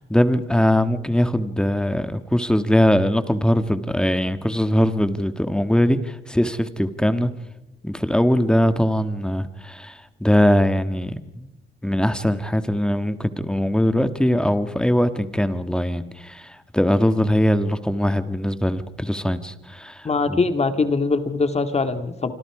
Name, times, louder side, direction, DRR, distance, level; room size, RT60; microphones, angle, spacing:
voice 1, 0.0-7.3 7.8-11.5 11.8-20.4, equal, 5° left, 10 dB, 1.6 m, -21 dB
voice 2, 20.0-22.3, left 3 dB, 30° left, 8 dB, 2.0 m, -22 dB
26.5 x 25.5 x 4.9 m, 0.93 s
cardioid pair, 90°, 20 cm